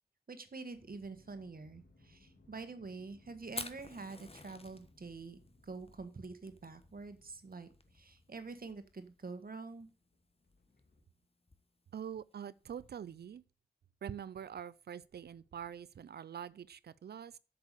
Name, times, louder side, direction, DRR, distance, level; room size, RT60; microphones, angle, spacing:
voice 1, 0.3-9.9, right 4 dB, 65° right, 1.6 m, -47 dB
sound 1, 0.7-11.0, left 2 dB, 80° left, 2.5 m, -66 dB
Fire, 3.5-13.2, left 3 dB, 35° left, 1.2 m, -52 dB
voice 2, 11.9-13.4 14.0-17.4, right 8 dB, 85° right, 0.4 m, -45 dB
8.1 x 6.8 x 6.8 m
cardioid pair, 45°, 16 cm